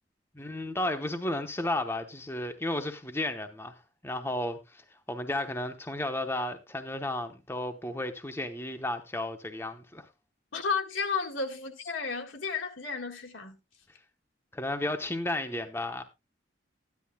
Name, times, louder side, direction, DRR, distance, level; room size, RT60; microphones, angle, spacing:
voice 1, 0.3-3.8 4.0-4.8 5.1-10.1 14.5-16.0, left 1 dB, 10° left, 0.8 m, -33 dB
voice 2, 10.5-13.6, left 5 dB, 80° left, 1.8 m, -32 dB
13.5 x 10.5 x 2.2 m
head